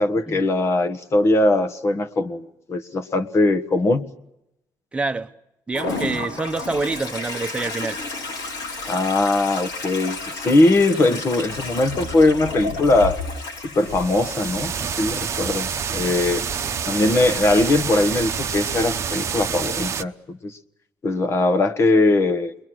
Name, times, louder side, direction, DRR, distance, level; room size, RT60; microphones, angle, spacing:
voice 1, 0.0-4.0 8.9-13.2 13.7-16.5 16.9-20.5 21.0-22.7, left 2 dB, 35° left, 1.4 m, -20 dB
voice 2, 4.9-5.3 5.7-8.0 10.9-11.2, right 3 dB, 15° right, 1.1 m, -27 dB
Toilet flush, 5.7-19.3, left 3 dB, 85° left, 7.5 m, -33 dB
sound 1, 13.8-20.0, right 7 dB, 40° right, 0.9 m, -27 dB
30.0 x 22.5 x 6.3 m
cardioid pair, 125°, 7 cm